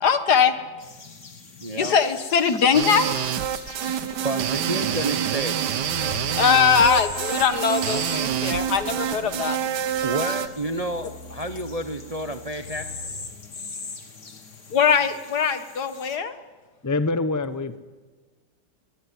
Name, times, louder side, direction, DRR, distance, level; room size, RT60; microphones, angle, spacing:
voice 1, 0.0-0.5 1.8-3.1 3.9-4.2 6.3-9.6 14.7-16.4, left 6 dB, 70° left, 10 dB, 2.0 m, -21 dB
sound 1, 0.8-16.2, left 4 dB, 45° left, 2.4 m, -42 dB
voice 2, 1.6-1.9 4.2-5.6 10.0-12.8, right 1 dB, 30° right, 8 dB, 0.7 m, -30 dB
sound 2, 2.7-10.5, right 9 dB, 75° right, 1.6 m, -27 dB
sound 3, 5.8-13.1, left 4 dB, 45° right, 3.2 m, -41 dB
voice 3, 16.8-17.8, left 3 dB, 15° left, 12 dB, 0.6 m, -25 dB
22.0 x 20.0 x 9.7 m, 1.3 s
omnidirectional pair, 1.8 m